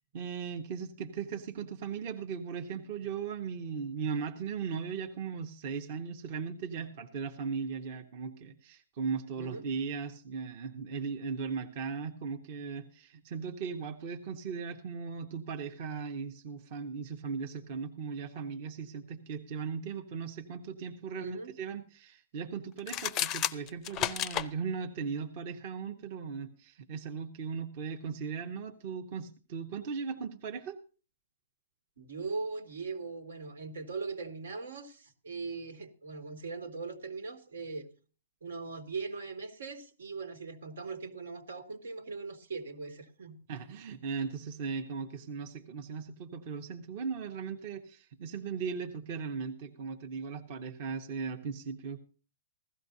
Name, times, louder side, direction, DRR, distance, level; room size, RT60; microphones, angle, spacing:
voice 1, 0.1-30.8 43.5-52.0, right 6 dB, 35° right, 0.9 m, -38 dB
voice 2, 9.4-9.7 21.2-21.6 32.0-37.9 38.4-43.4, right 4 dB, 80° right, 2.2 m, -40 dB
sound 1, 22.8-24.5, left 11 dB, 20° left, 0.5 m, -32 dB
16.0 x 13.5 x 2.7 m
hypercardioid pair, 165°, 0 cm